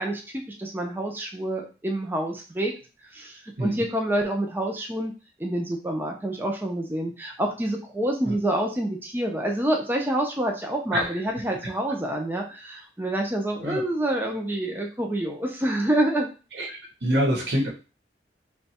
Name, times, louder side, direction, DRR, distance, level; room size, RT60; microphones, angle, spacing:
voice 1, 0.0-2.7 3.1-5.1 5.4-16.3, right 1 dB, 10° right, 1 dB, 0.5 m, -27 dB
voice 2, 17.0-17.7, equal, 80° right, -2 dB, 1.0 m, -24 dB
3.0 x 2.3 x 4.1 m, 0.33 s
head